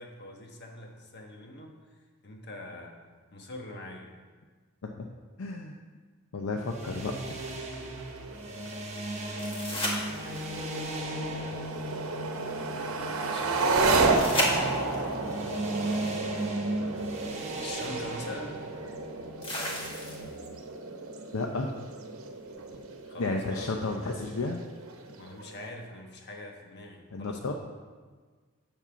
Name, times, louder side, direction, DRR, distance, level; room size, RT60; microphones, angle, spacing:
voice 1, 0.0-1.8 2.2-3.0 3.3-4.1 10.2-11.6 13.3-14.4 17.6-18.6 23.1-23.8 25.2-27.5, left 1 dB, 55° left, 2 dB, 1.2 m, -43 dB
voice 2, 5.4-5.7 6.3-7.1 21.3-21.7 23.2-24.6 27.1-27.5, left 3 dB, 70° left, 2 dB, 0.6 m, -32 dB
sound 1, 6.6-20.2, right 1 dB, 30° right, 1.2 m, -37 dB
sound 2, 6.9-25.7, right 3 dB, 80° right, 0.9 m, -33 dB
sound 3, 9.4-10.7 14.1-15.1 17.0-17.1 19.4-20.5 23.4-23.5, equal, 25° left, 1.5 m, -32 dB
7.4 x 5.4 x 6.9 m, 1.5 s
head